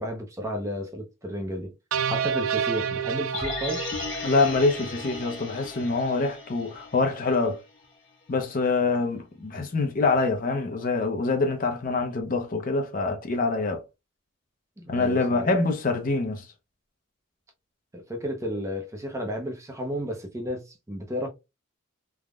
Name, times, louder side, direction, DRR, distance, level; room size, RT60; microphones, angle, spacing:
voice 1, 0.0-1.7 2.1-3.8 14.8-15.5 17.9-21.3, equal, 15° right, 0.5 m, -32 dB
sound 1, 1.9-5.2, right 7 dB, 85° right, 0.3 m, -30 dB
sound 2, 3.3-7.5 7.8-7.9, left 3 dB, 65° left, 1.1 m, -36 dB
voice 2, 4.2-7.6 8.3-13.8 14.9-16.5, left 3 dB, 40° left, 0.5 m, -25 dB
3.4 x 2.1 x 2.3 m
head